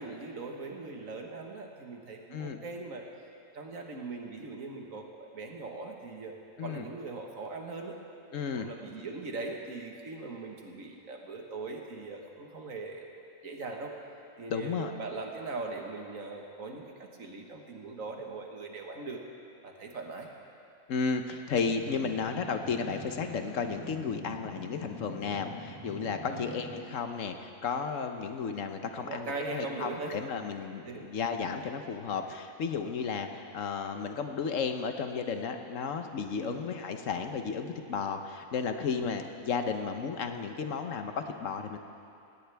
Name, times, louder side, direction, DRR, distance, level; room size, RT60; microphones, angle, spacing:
voice 1, 0.0-3.1 3.5-6.3 6.6-8.0 8.5-13.9 14.4-19.2 19.6-20.3 26.3-26.5 29.0-30.2 30.9-31.1 36.4-36.6, right 3 dB, 80° right, 1 dB, 1.8 m, -40 dB
voice 2, 8.3-8.7 14.5-14.9 20.9-41.8, left 5 dB, 70° left, 6 dB, 1.2 m, -33 dB
sound 1, 21.6-26.8, equal, 30° right, 3.2 m, -45 dB
17.5 x 17.5 x 3.4 m, 2.6 s
omnidirectional pair, 1.4 m